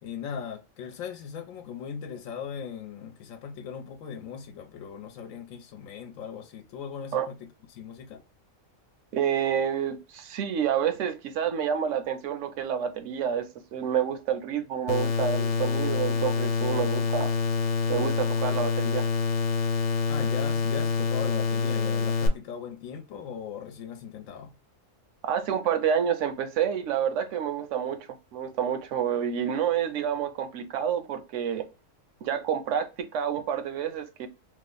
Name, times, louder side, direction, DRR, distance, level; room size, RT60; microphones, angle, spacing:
voice 1, 0.0-7.3 7.7-8.2 20.1-24.5, left 7 dB, 90° left, 1.0 m, -39 dB
voice 2, 9.1-17.3 17.9-19.0 25.2-31.7 32.2-34.3, right 8 dB, 75° right, 0.9 m, -28 dB
sound 1, 14.9-22.3, left 5 dB, 65° left, 0.9 m, -26 dB
3.1 x 2.0 x 3.7 m
omnidirectional pair, 1.4 m